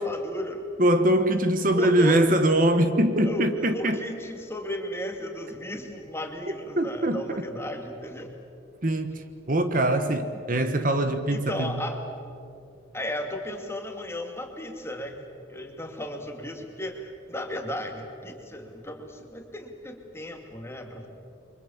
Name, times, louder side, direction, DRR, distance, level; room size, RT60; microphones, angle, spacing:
voice 1, 0.0-0.6 1.7-2.2 3.2-8.3 11.1-12.0 12.9-15.2 15.5-21.1, left 1 dB, 15° left, 2.5 m, -35 dB
voice 2, 0.8-4.0 6.8-7.2 8.8-11.8, right 1 dB, 45° right, 1.3 m, -23 dB
29.0 x 24.0 x 7.3 m
head